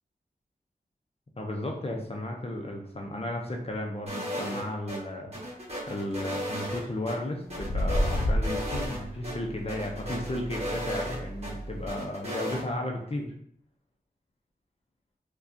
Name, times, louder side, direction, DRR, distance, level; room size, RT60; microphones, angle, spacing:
voice 1, 1.4-5.3 5.9-13.3, left 1 dB, 40° left, 1 dB, 0.6 m, -34 dB
sound 1, 4.1-5.0 5.3-7.1 7.5-9.0 9.2-9.3 9.7-11.5 11.9-12.6, equal, 45° right, 1.2 m, -35 dB
sound 2, 6.0-6.4 7.5-11.9, equal, 90° left, 0.8 m, -32 dB
4.7 x 2.3 x 2.7 m, 0.65 s
wide cardioid pair, 55°, 16 cm